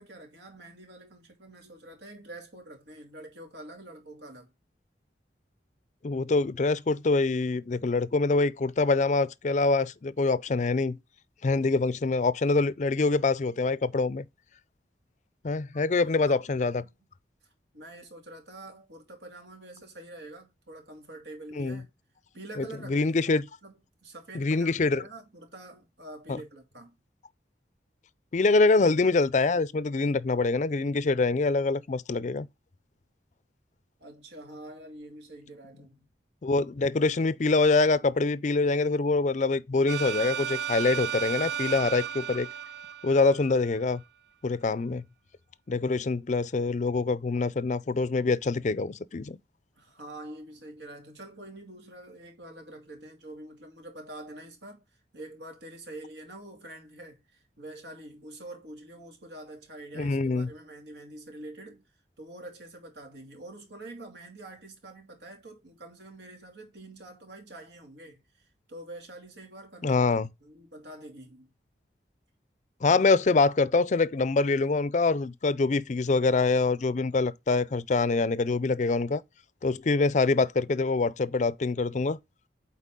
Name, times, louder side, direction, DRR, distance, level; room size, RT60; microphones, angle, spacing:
voice 1, 0.0-4.5 15.7-16.4 16.7-16.9 17.4-17.5 17.7-21.9 22.3-23.3 23.6-26.9 34.0-36.1 49.8-54.8 55.1-61.8 62.2-70.1 70.4-71.5, right 1 dB, 90° right, 2.6 m, -46 dB
voice 2, 6.0-11.0 11.4-14.3 15.4-16.8 21.6-21.8 22.6-23.4 24.3-25.0 26.3-26.4 28.3-32.5 36.4-42.5 43.0-44.0 44.4-45.0 45.7-49.4 60.0-60.5 69.8-70.3 72.8-79.2 79.6-82.2, left 3 dB, 45° left, 0.4 m, -25 dB
sound 1, 39.9-43.8, right 9 dB, 60° right, 0.3 m, -34 dB
8.3 x 4.3 x 3.7 m
head